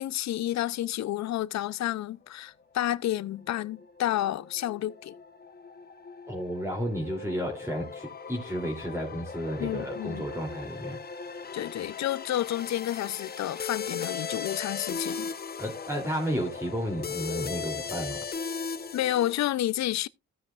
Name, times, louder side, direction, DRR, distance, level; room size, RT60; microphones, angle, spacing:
voice 1, 0.0-5.2 9.6-10.3 11.5-15.3 18.9-20.1, left 13 dB, 65° left, 0.6 m, -30 dB
sound 1, 3.2-19.3, left 5 dB, 30° left, 0.9 m, -38 dB
voice 2, 6.3-11.0 11.3-11.4 15.6-18.2, equal, 10° right, 3.0 m, -32 dB
15.5 x 7.5 x 2.4 m
cardioid pair, 90°, 30 cm